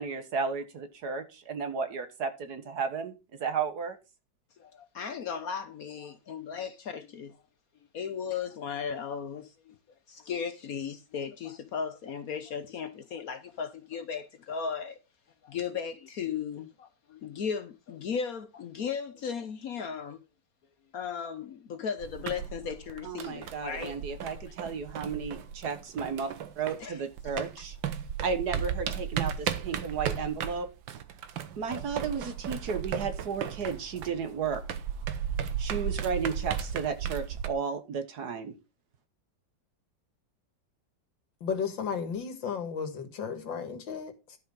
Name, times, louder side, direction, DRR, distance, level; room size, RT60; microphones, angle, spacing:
voice 1, 0.0-4.0 23.0-27.8 28.2-30.7 31.6-34.6 35.6-38.5, right 5 dB, 60° right, 1.7 m, -33 dB
voice 2, 4.6-7.4 7.9-9.7 10.1-15.0 15.4-20.2 20.9-24.0 26.8-27.0, left 6 dB, 60° left, 1.1 m, -36 dB
sound 1, 22.0-26.9 27.2-37.5, right 8 dB, 85° right, 1.7 m, -35 dB
voice 3, 41.4-44.4, left 6 dB, 80° left, 2.4 m, -34 dB
12.0 x 5.4 x 5.4 m
omnidirectional pair, 2.0 m